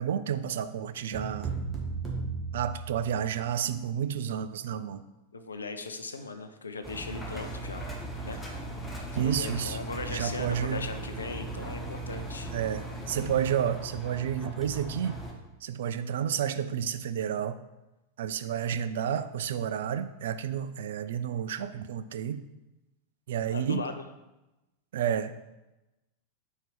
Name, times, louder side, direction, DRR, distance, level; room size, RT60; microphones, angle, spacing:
voice 1, 0.0-1.5 2.5-5.0 9.2-9.8 10.1-10.8 12.5-15.2 15.6-17.6 18.2-22.4 23.3-23.8 24.9-25.3, right 9 dB, 60° right, 12 dB, 0.3 m, -30 dB
sound 1, 1.1-3.4, right 4 dB, 20° right, 1.4 m, -35 dB
voice 2, 5.3-7.9 8.2-8.4 9.2-12.5 23.5-24.0, left 3 dB, 75° left, 8 dB, 0.5 m, -38 dB
Engine, 6.8-15.3, right 2 dB, 10° left, 1.1 m, -38 dB
4.5 x 4.4 x 5.1 m, 1.0 s
figure-of-eight pair, 90°, 0 cm